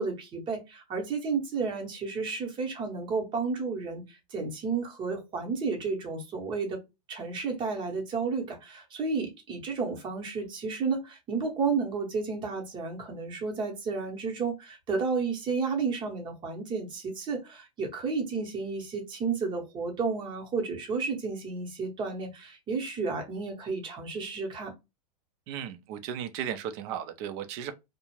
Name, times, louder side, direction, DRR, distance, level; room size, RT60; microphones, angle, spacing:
voice 1, 0.0-6.8 7.1-24.7, right 4 dB, 25° right, 0.8 m, -32 dB
voice 2, 25.5-27.7, right 9 dB, 45° right, 0.5 m, -35 dB
2.4 x 2.1 x 3.0 m
hypercardioid pair, 135°, 20 cm